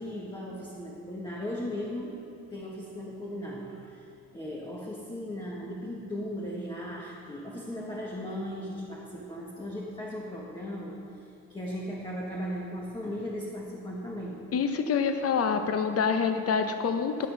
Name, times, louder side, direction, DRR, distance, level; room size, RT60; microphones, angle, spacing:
voice 1, 0.0-2.2 2.5-4.0 4.3-11.0 11.5-14.5, equal, 15° left, -4 dB, 1.4 m, -37 dB
voice 2, 14.5-17.3, left 6 dB, 50° left, 8 dB, 0.8 m, -26 dB
11.0 x 6.1 x 6.1 m, 2.6 s
cardioid pair, 90°, 30 cm